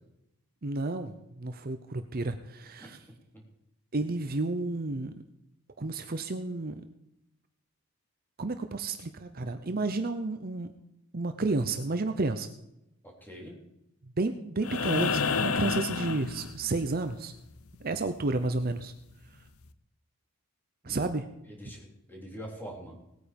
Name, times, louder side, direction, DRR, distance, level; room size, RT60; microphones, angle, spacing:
voice 1, 0.6-3.0 3.9-5.2 5.8-6.8 8.4-10.7 11.1-12.5 14.0-17.3 17.8-18.9 20.8-21.3, right 2 dB, 40° right, 9 dB, 0.7 m, -31 dB
voice 2, 13.0-13.6 20.8-21.1 21.6-23.0, equal, 10° left, -1 dB, 3.5 m, -44 dB
sound 1, 14.6-16.9 18.8-18.9, left 5 dB, 75° left, 0.8 m, -30 dB
18.5 x 9.3 x 5.3 m, 0.86 s
head